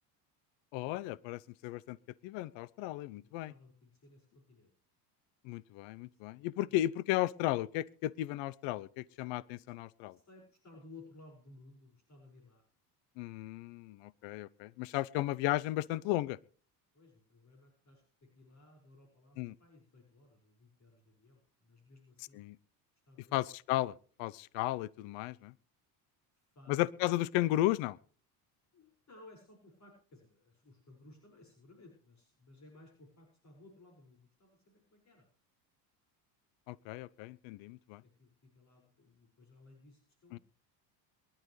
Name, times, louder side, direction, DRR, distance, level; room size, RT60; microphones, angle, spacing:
voice 1, 0.7-2.0 2.2-3.5 5.4-10.2 13.2-16.4 19.4-19.5 22.3-22.6 23.3-23.9 24.2-25.5 26.7-28.0 36.7-38.0 40.3-40.4, left 16 dB, 65° left, 0.8 m, -34 dB
voice 2, 3.2-4.7 6.0-6.3 6.7-6.8 10.0-12.6 16.9-22.4 23.1-23.4 26.3-26.8 28.7-35.2 38.0-40.4, left 2 dB, 35° left, 5.7 m, -59 dB
23.0 x 11.5 x 3.2 m
supercardioid pair, 90°, 49 cm